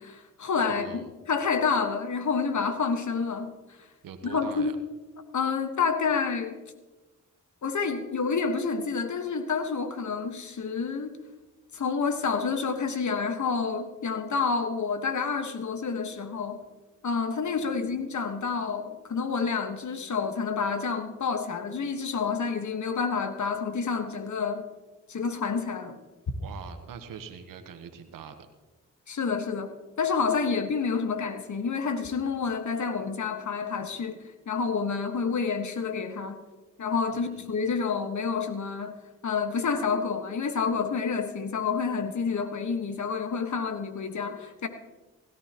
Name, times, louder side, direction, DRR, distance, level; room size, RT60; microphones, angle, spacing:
voice 1, 0.0-3.5 4.2-4.8 5.3-6.6 7.6-11.2 11.7-16.6 17.0-24.6 25.1-26.0 29.1-36.4 36.8-39.0 39.2-44.7, left 5 dB, 60° left, 8 dB, 1.5 m, -29 dB
voice 2, 0.6-1.1 4.0-4.8 17.6-18.0 26.4-28.5 37.1-37.5, right 7 dB, 85° right, 8 dB, 1.1 m, -44 dB
17.0 x 13.5 x 3.0 m, 1.2 s
supercardioid pair, 45°, 32 cm